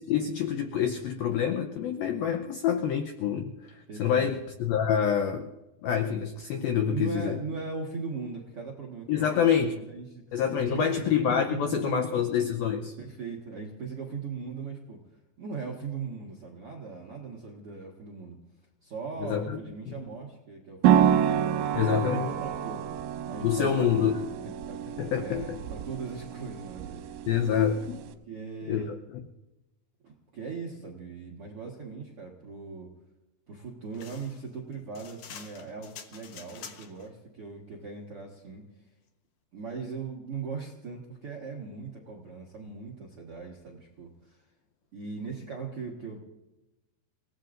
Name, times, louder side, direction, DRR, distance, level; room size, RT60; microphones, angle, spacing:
voice 1, 0.0-5.5 5.8-7.4 9.1-9.8 10.3-13.0 19.2-19.6 19.9-20.0 21.7-22.3 23.4-24.3 25.0-25.6 27.3-28.0 28.7-29.0, left 8 dB, 90° left, 5 dB, 2.1 m, -27 dB
voice 2, 3.9-4.3 6.9-10.2 10.5-11.0 11.5-12.3 13.0-15.0 15.4-18.4 18.8-22.8 23.2-24.0 24.7-27.1 28.3-28.9 30.0-32.9 33.5-38.6 39.5-44.4 44.9-46.2, right 4 dB, 65° right, -1 dB, 1.4 m, -39 dB
sound 1, 20.8-28.1, right 10 dB, 85° right, 3.2 m, -28 dB
sound 2, 33.9-37.1, left 7 dB, 65° left, 2.1 m, -47 dB
29.0 x 17.5 x 2.6 m, 1.0 s
omnidirectional pair, 5.4 m